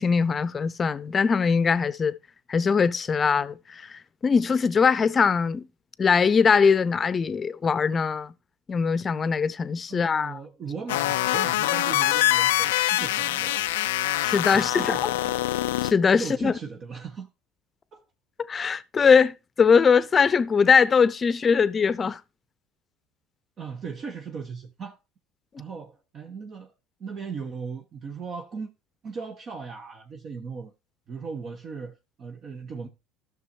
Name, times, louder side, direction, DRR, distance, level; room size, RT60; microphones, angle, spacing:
voice 1, 0.0-2.2 2.5-5.7 6.0-8.3 8.7-10.4 14.2-14.9 15.8-16.5 18.4-22.2, left 6 dB, 30° left, 0.7 m, -21 dB
voice 2, 9.9-13.7 14.5-15.4 16.2-17.3 17.9-18.0 23.6-25.0 25.6-26.7 27.0-28.7 29.0-30.7 31.1-32.9, right 5 dB, 45° right, 1.2 m, -37 dB
sound 1, 10.9-15.9, left 15 dB, 80° left, 0.4 m, -24 dB
15.0 x 6.2 x 2.8 m
hypercardioid pair, 75°, 0 cm